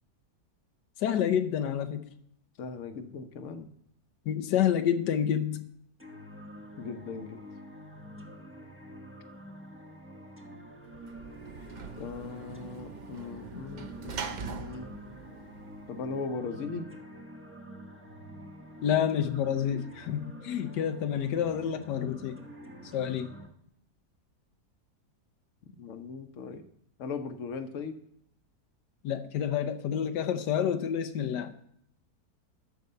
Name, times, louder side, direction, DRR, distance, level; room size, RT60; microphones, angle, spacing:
voice 1, 1.0-2.1 4.3-5.7 18.8-22.4 22.9-23.3 29.0-31.5, left 9 dB, 90° left, 9 dB, 1.4 m, -28 dB
voice 2, 2.6-3.7 6.8-7.4 12.0-14.9 15.9-16.9 25.8-26.6 27.0-28.0, left 4 dB, 55° left, 8 dB, 1.1 m, -38 dB
sound 1, 6.0-23.5, right 1 dB, 10° right, 0.9 m, -47 dB
Sliding door / Slam, 10.8-16.2, right 5 dB, 85° right, 0.4 m, -43 dB
13.0 x 4.8 x 6.7 m, 0.71 s
omnidirectional pair, 1.8 m